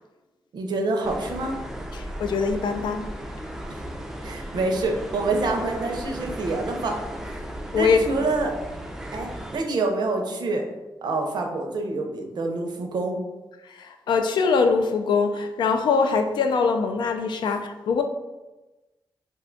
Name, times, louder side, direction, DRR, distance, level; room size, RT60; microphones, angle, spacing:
voice 1, 0.5-1.6 4.2-7.0 7.7-8.5 9.1-10.6 11.0-13.2, right 3 dB, 70° right, 3 dB, 0.5 m, -26 dB
sound 1, 1.0-9.6, right 1 dB, 5° right, 0.3 m, -36 dB
voice 2, 1.9-3.0 7.7-8.0 13.7-18.0, left 5 dB, 80° left, 6 dB, 0.3 m, -23 dB
2.5 x 2.2 x 3.7 m, 1.1 s
wide cardioid pair, 110°, 8 cm